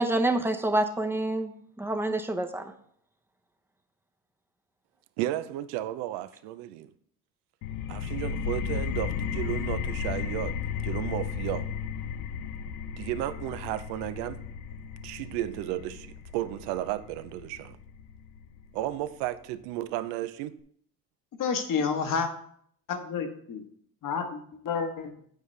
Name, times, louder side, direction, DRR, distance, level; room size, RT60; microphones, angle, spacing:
voice 1, 0.0-1.5 1.8-2.7, right 2 dB, 5° right, 0.8 m, -27 dB
voice 2, 5.2-6.9 7.9-10.5 10.8-11.7 13.0-14.4 15.0-17.8 18.7-20.5, right 14 dB, 70° right, 0.6 m, -33 dB
sound 1, 7.6-19.0, left 7 dB, 80° left, 0.6 m, -34 dB
voice 3, 21.4-22.3 22.9-23.6 24.0-25.1, left 5 dB, 50° left, 1.3 m, -30 dB
9.2 x 5.0 x 3.2 m
hypercardioid pair, 70°, 40 cm